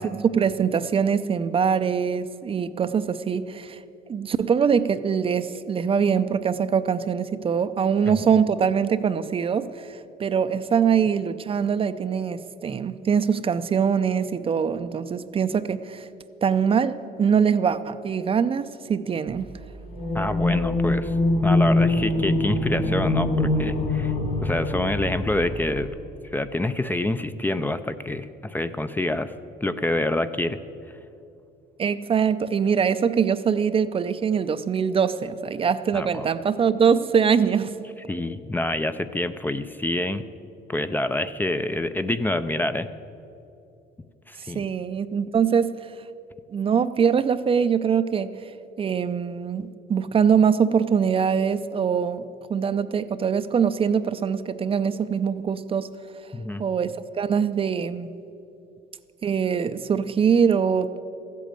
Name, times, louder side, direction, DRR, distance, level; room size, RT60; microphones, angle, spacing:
voice 1, 0.0-3.8 4.1-16.1 16.4-19.5 31.8-37.7 44.5-45.7 46.5-48.3 48.8-55.9 56.6-58.1 59.2-61.0, right 7 dB, 35° right, 12 dB, 0.5 m, -23 dB
sound 1, 19.9-25.9, left 2 dB, 50° left, 2.8 m, -23 dB
voice 2, 20.1-21.1 21.4-24.1 24.4-25.9 26.3-29.3 29.6-30.6 35.9-36.3 38.1-40.2 40.7-42.9 44.3-44.6 56.3-56.6, left 1 dB, 10° left, 11 dB, 0.5 m, -27 dB
14.5 x 8.4 x 8.9 m, 2.7 s
cardioid pair, 110°, 17 cm